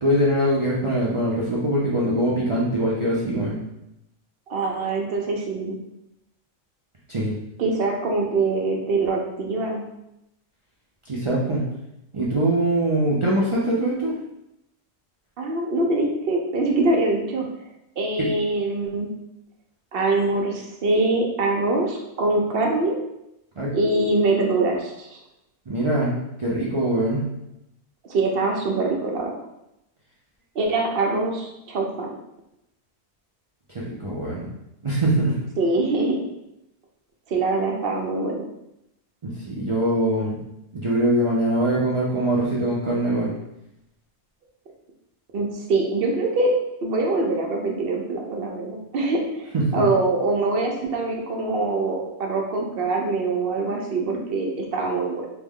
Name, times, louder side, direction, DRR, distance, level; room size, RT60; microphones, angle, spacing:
voice 1, 0.0-3.6 7.1-7.4 11.1-11.6 12.1-14.2 18.2-18.3 23.6-23.7 25.7-27.2 33.7-34.5 34.8-35.4 39.2-40.4 40.7-43.3 49.5-49.8, right 1 dB, 45° right, -6 dB, 0.4 m, -23 dB
voice 2, 4.5-5.8 7.6-9.8 15.4-17.5 18.0-19.1 19.9-22.9 23.7-25.2 28.1-29.3 30.6-32.1 35.6-36.2 37.3-38.4 45.3-46.5 46.8-55.3, right 2 dB, 65° right, 1 dB, 0.8 m, -24 dB
3.3 x 2.1 x 3.5 m, 0.85 s
omnidirectional pair, 1.1 m